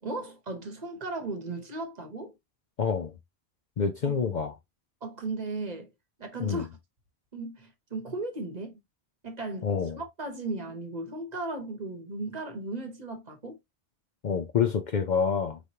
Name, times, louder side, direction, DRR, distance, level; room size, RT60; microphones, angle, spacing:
voice 1, 0.0-2.3 4.0-4.2 5.0-5.9 6.2-6.7 7.3-8.8 9.2-13.6, right 2 dB, 40° right, 1.1 m, -36 dB
voice 2, 2.8-3.1 3.8-4.5 6.4-6.6 9.6-10.0 14.2-15.6, left 6 dB, 55° left, 0.6 m, -27 dB
4.9 x 3.1 x 2.7 m
omnidirectional pair, 1.1 m